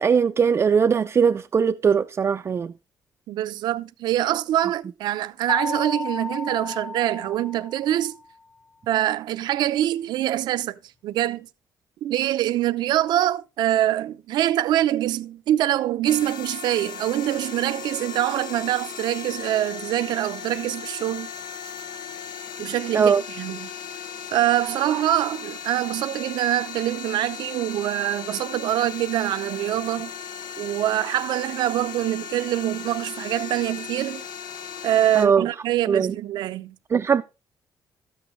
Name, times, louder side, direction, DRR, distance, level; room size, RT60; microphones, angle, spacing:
voice 1, 0.0-2.7 22.9-23.2 35.2-35.5 35.9-36.1 36.9-37.2, right 6 dB, 35° right, 0.5 m, -20 dB
voice 2, 3.3-8.2 8.9-11.5 12.0-21.3 22.6-23.7 24.3-30.1 30.6-34.2 34.8-36.8, right 13 dB, 85° right, 0.7 m, -24 dB
sound 1, 5.5-8.3, left 3 dB, 45° left, 0.7 m, -33 dB
sound 2, 16.0-35.3, left 7 dB, 75° left, 0.9 m, -37 dB
13.0 x 8.4 x 3.2 m
cardioid pair, 120°, 7 cm